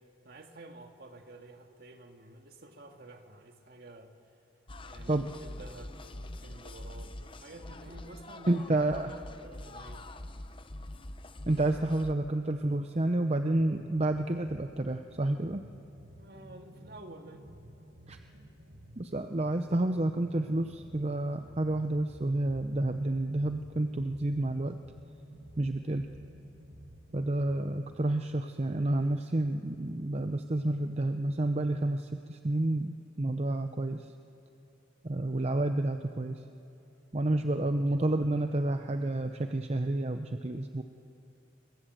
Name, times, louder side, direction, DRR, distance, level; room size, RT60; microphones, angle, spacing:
voice 1, 0.2-4.1 4.8-10.1 16.2-17.5, right 2 dB, 55° right, 4 dB, 1.9 m, -50 dB
sound 1, 4.7-12.1, left 1 dB, 25° left, 0.8 m, -45 dB
voice 2, 8.5-9.1 11.5-15.6 18.1-18.2 19.0-24.8 25.6-26.1 27.1-34.0 35.0-36.4 37.1-40.8, right 2 dB, 35° right, 7 dB, 0.7 m, -30 dB
sound 2, 14.5-28.0, right 1 dB, 85° right, 4.0 m, -52 dB
27.0 x 22.0 x 7.8 m, 2.9 s
head